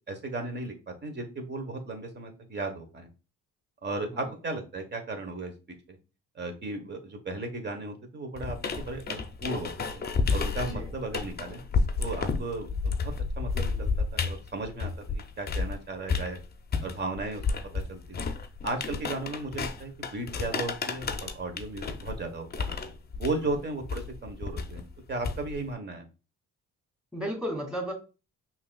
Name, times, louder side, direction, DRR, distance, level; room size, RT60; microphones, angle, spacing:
voice 1, 0.1-3.1 3.8-5.5 5.9-6.0 6.3-10.0 10.3-11.6 12.0-16.4 16.8-17.4 17.7-18.3 18.6-22.7 23.1-26.0, right 2 dB, 35° right, 5 dB, 1.2 m, -35 dB
sound 1, 8.4-15.8 16.1-25.7, left 4 dB, 35° left, 0.6 m, -31 dB
voice 2, 27.1-27.9, equal, 5° right, 1 dB, 2.4 m, -34 dB
5.6 x 2.8 x 2.3 m, 0.31 s
cardioid pair, 90°, 30 cm